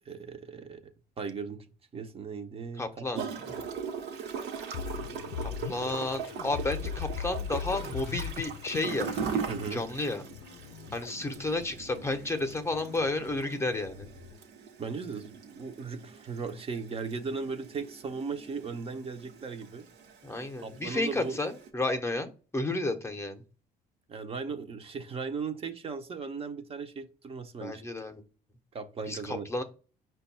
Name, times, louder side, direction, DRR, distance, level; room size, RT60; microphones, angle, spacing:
voice 1, 0.1-0.8 1.2-1.6 1.9-3.2 9.5-9.8 14.8-19.9 20.6-21.4 24.1-27.8 28.7-29.5, right 5 dB, 35° right, 7 dB, 0.6 m, -37 dB
voice 2, 2.8-3.2 5.4-9.1 9.7-10.2 10.9-14.1 20.2-23.4 27.6-28.2 29.1-29.6, left 2 dB, 15° left, 6 dB, 0.6 m, -32 dB
Gurgling / Toilet flush, 3.1-21.7, right 6 dB, 80° right, 1.0 m, -40 dB
sound 1, 4.7-14.4, left 8 dB, 80° left, 0.4 m, -41 dB
5.1 x 2.2 x 4.0 m, 0.36 s
cardioid pair, 110°, 17 cm